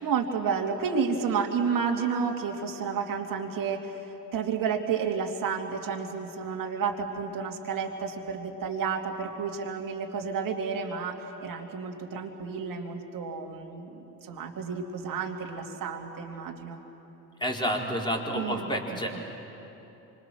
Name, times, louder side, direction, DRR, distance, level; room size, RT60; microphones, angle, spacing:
voice 1, 0.0-16.8 18.3-19.2, right 6 dB, 45° right, 3 dB, 2.8 m, -31 dB
voice 2, 17.4-19.2, equal, 10° left, -1 dB, 4.5 m, -29 dB
30.0 x 25.5 x 6.3 m, 3.0 s
hypercardioid pair, 65°, 46 cm